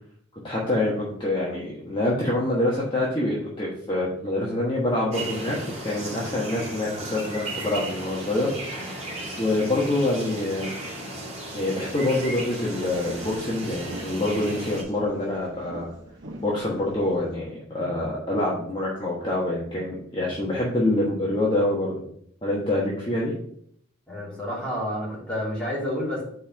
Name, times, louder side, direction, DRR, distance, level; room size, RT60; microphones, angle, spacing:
voice 1, 0.4-5.6 5.8-8.5 9.4-10.7 11.5-15.9 16.4-22.0 22.4-23.3, left 1 dB, 25° left, -5 dB, 1.2 m, -26 dB
sound 1, 5.1-14.8, right 1 dB, 35° right, 2.2 m, -35 dB
sound 2, 12.1-17.3, right 1 dB, 75° right, 1.2 m, -43 dB
voice 2, 24.1-26.2, equal, 5° left, -7 dB, 2.8 m, -29 dB
5.5 x 4.4 x 5.6 m, 0.66 s
head